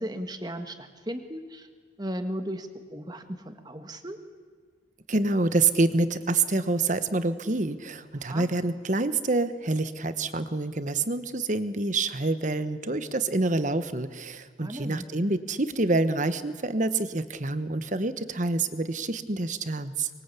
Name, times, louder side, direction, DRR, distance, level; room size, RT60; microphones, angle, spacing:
voice 1, 0.0-1.7 2.0-4.2 8.2-8.5 14.6-15.0, equal, 20° right, 7 dB, 1.7 m, -36 dB
voice 2, 5.1-20.1, right 2 dB, 40° right, 11 dB, 1.2 m, -27 dB
24.5 x 22.5 x 8.4 m, 1.5 s
head